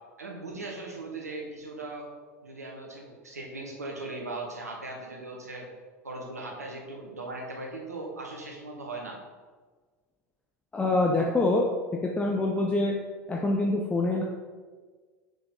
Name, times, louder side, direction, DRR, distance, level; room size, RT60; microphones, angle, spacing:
voice 1, 0.2-2.1 2.4-5.7 6.0-9.2, right 2 dB, 85° right, 0 dB, 1.2 m, -38 dB
voice 2, 10.7-11.6 12.0-12.9 13.3-14.2, left 2 dB, 15° left, 0 dB, 0.7 m, -25 dB
6.0 x 5.2 x 3.7 m, 1.4 s
figure-of-eight pair, 80°, 8 cm